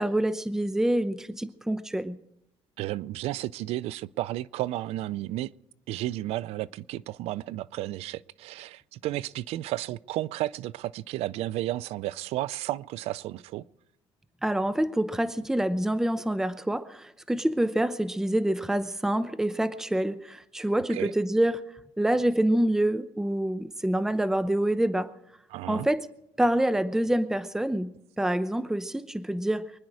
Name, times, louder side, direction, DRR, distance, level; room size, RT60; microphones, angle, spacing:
voice 1, 0.0-2.2 14.4-21.7 22.0-25.1 25.7-26.1 26.4-29.7, right 1 dB, 5° right, 0.7 m, -26 dB
voice 2, 2.8-5.5 5.9-13.6 20.9-21.1 25.5-25.9, right 15 dB, 80° right, 0.5 m, -33 dB
24.5 x 10.5 x 4.8 m
cardioid pair, 105°, 10 cm